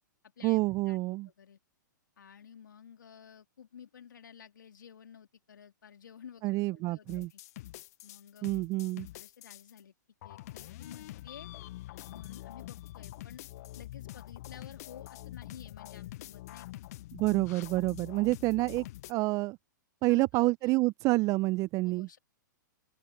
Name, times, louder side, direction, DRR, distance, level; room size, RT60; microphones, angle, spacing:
voice 1, 0.4-1.3 6.4-7.3 8.4-9.1 17.1-19.6 20.0-22.1, right 21 dB, 30° right, 0.5 m, -28 dB
voice 2, 1.2-1.6 2.2-7.4 8.0-8.5 9.1-9.9 10.2-11.5 12.1-13.4 13.7-16.8 20.1-20.7 21.8-22.2, left 8 dB, 75° left, 3.0 m, -52 dB
sound 1, 7.1-9.8 10.2-19.1, left 16 dB, 50° left, 0.6 m, -46 dB
open air
hypercardioid pair, 120°, 10 cm